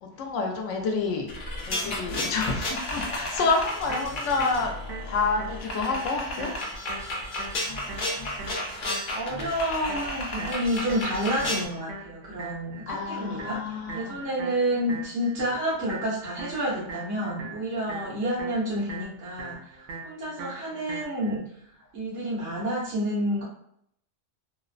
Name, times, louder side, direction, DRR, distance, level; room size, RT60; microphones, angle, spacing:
voice 1, 0.0-1.4 1.7-4.8 5.1-7.2 12.9-14.2, left 4 dB, 85° left, 0.9 m, -29 dB
sound 1, 1.3-11.7, left 1 dB, 55° left, 0.7 m, -33 dB
sound 2, 3.4-21.4, right 4 dB, 90° right, 1.0 m, -42 dB
voice 2, 9.1-13.6 13.9-19.6 20.0-21.4 21.9-23.4, equal, 70° right, 1.3 m, -29 dB
2.9 x 2.0 x 2.4 m
omnidirectional pair, 1.2 m